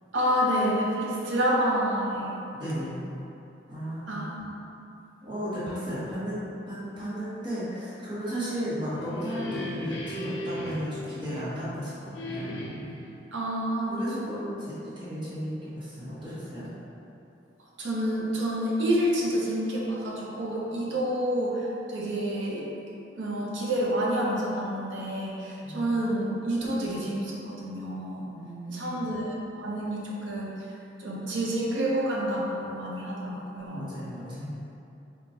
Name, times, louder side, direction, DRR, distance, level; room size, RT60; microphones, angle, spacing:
voice 1, 0.1-2.3 2.9-3.0 4.1-4.5 13.3-14.0 17.8-22.6 23.2-28.2 28.7-30.5 31.0-33.9, equal, 75° right, -4 dB, 0.7 m, -28 dB
voice 2, 2.5-3.0 3.7-4.2 5.2-12.6 13.9-16.7 25.6-26.1 28.2-29.0 33.7-34.6, equal, 25° right, -11 dB, 1.0 m, -34 dB
sound 1, 8.7-11.7 12.1-13.1, left 1 dB, 75° left, 0.5 m, -37 dB
4.5 x 2.2 x 2.6 m, 2.8 s
head